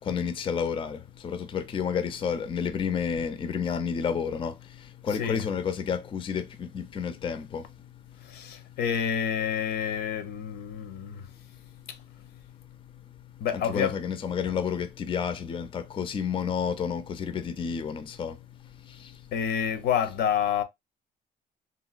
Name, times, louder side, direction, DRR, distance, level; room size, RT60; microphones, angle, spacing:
voice 1, 0.0-4.5 5.0-7.6 13.5-18.4, left 7 dB, 30° left, 0.4 m, -30 dB
voice 2, 8.2-11.3 13.4-13.9 19.3-20.6, left 8 dB, 70° left, 0.6 m, -28 dB
2.9 x 2.7 x 2.3 m
cardioid pair, 110°, 17 cm